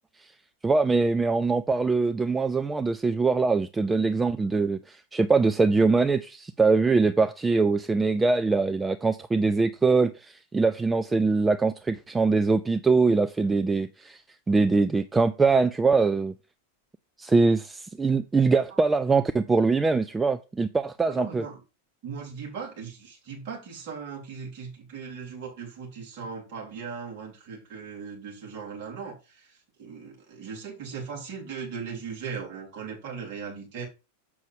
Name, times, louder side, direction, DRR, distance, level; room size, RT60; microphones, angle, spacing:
voice 1, 0.6-14.2 14.5-16.3 17.2-21.4, right 4 dB, 10° right, 0.4 m, -23 dB
voice 2, 21.1-21.6 22.0-33.9, right 6 dB, 45° right, 3.7 m, -38 dB
7.3 x 6.2 x 3.6 m
figure-of-eight pair, 90°, 0 cm